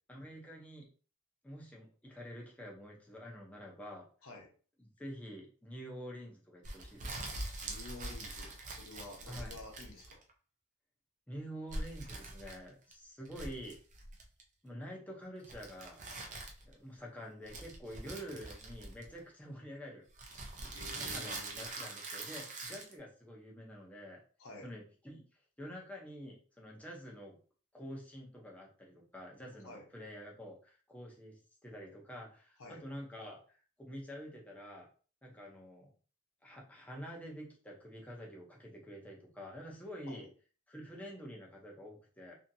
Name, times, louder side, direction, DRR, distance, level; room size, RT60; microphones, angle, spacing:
voice 1, 0.1-0.9 1.4-4.0 5.0-7.3 9.3-9.6 11.3-13.8 14.6-16.0 16.7-24.2 24.6-25.2 25.6-27.4 27.7-34.9 35.2-35.9 36.4-40.3 40.7-42.4, equal, 5° left, -1 dB, 0.6 m, -48 dB
sound 1, 6.6-10.3 11.7-12.9 13.2-14.4 15.4-16.7 17.5-19.3 20.1-22.9, right 2 dB, 35° right, 0.5 m, -43 dB
voice 2, 7.6-10.2 20.7-21.7 24.4-24.7 29.6-29.9 32.6-32.8 40.1-40.3, left 3 dB, 65° left, 1 dB, 0.8 m, -50 dB
2.7 x 2.7 x 2.6 m, 0.39 s
head